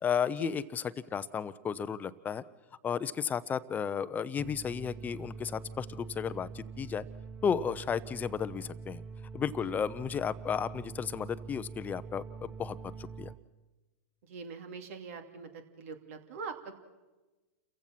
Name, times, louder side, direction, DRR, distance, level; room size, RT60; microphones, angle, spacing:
voice 1, 0.0-2.4 2.8-7.0 7.4-9.0 9.3-13.3, left 7 dB, 20° left, 15 dB, 0.8 m, -33 dB
sound 1, 4.4-13.4, right 5 dB, 15° right, 1.1 m, -45 dB
voice 2, 14.3-16.7, right 5 dB, 60° right, 6 dB, 2.7 m, -43 dB
29.5 x 15.5 x 5.9 m, 1.1 s
hypercardioid pair, 110°, 8 cm